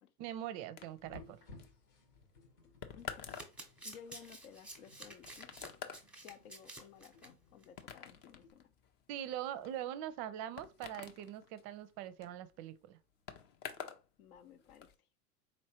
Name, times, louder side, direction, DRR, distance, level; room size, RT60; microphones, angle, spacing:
voice 1, 0.2-1.4 9.1-13.0, right 11 dB, 40° right, 0.5 m, -42 dB
sound 1, 0.8-14.1 14.3-14.9, left 7 dB, 25° left, 0.3 m, -50 dB
sound 2, 1.0-8.5, left 3 dB, 80° left, 1.3 m, -60 dB
voice 2, 2.9-3.3 3.8-5.7 6.2-8.7 14.2-14.9, left 8 dB, 65° left, 0.8 m, -56 dB
Domestic sounds home sounds, 3.0-7.3 7.6-7.8 8.1-8.2, right 1 dB, ahead, 0.8 m, -51 dB
4.2 x 3.1 x 2.9 m
hypercardioid pair, 90°, 48 cm